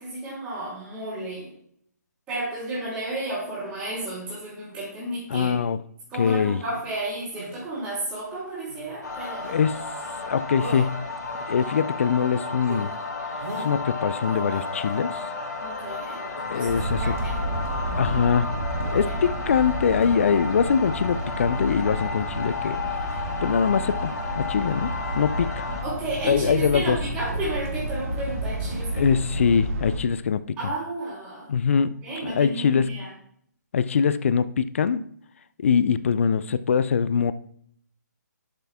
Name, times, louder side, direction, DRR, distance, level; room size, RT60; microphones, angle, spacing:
voice 1, 0.0-1.5 2.3-5.5 6.1-9.5 15.6-16.2 16.5-17.3 18.8-19.1 25.8-29.1 30.6-31.5 32.0-33.1, right 2 dB, 10° right, -14 dB, 3.2 m, -32 dB
voice 2, 5.3-5.8 6.1-6.6 9.4-9.8 10.2-11.0 11.5-12.9 13.6-15.2 16.5-17.2 17.9-18.5 18.9-22.8 23.4-25.6 26.2-27.0 28.9-30.7 31.5-33.0 33.7-35.0 35.6-37.3, left 6 dB, 45° left, 15 dB, 0.4 m, -23 dB
sound 1, 6.2-6.9 7.3-7.5 8.7-8.9 9.4-9.7 10.0-10.3 10.6-10.9 11.4-12.3 12.6-12.8 13.4-13.7 14.3-15.2 16.3-16.4, right 2 dB, 65° right, 3.3 m, -40 dB
sound 2, 9.0-25.8, left 3 dB, 75° left, 3.6 m, -33 dB
sound 3, 16.6-30.0, right 1 dB, 45° right, 1.8 m, -31 dB
11.5 x 5.9 x 3.6 m, 0.65 s
hypercardioid pair, 170°, 10 cm